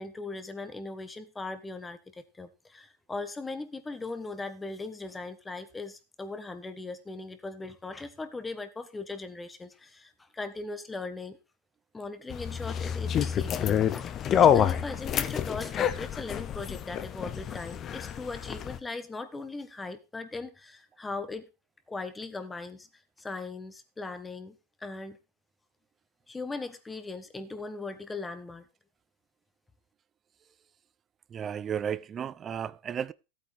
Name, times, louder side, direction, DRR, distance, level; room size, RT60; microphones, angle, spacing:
voice 1, 0.0-11.4 11.9-21.5 21.9-22.9 23.2-25.2 26.3-28.6, left 3 dB, 10° left, 1.3 m, -39 dB
sound 1, 12.3-18.8, left 9 dB, 35° left, 0.9 m, -27 dB
voice 2, 31.3-33.1, right 8 dB, 30° right, 0.5 m, -33 dB
14.5 x 8.8 x 3.5 m
supercardioid pair, 120°, 0 cm